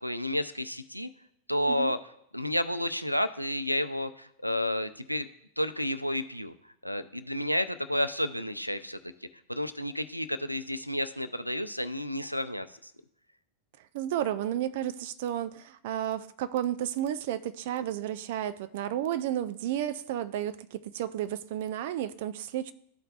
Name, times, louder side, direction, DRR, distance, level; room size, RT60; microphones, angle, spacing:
voice 1, 0.0-1.1 1.5-2.0 2.3-5.3 5.6-6.5 6.8-9.0 9.5-12.9, left 1 dB, 90° left, 10 dB, 0.4 m, -31 dB
voice 2, 13.9-22.7, right 11 dB, 50° right, 12 dB, 0.4 m, -32 dB
13.5 x 4.5 x 2.4 m, 0.71 s
figure-of-eight pair, 90°, 0 cm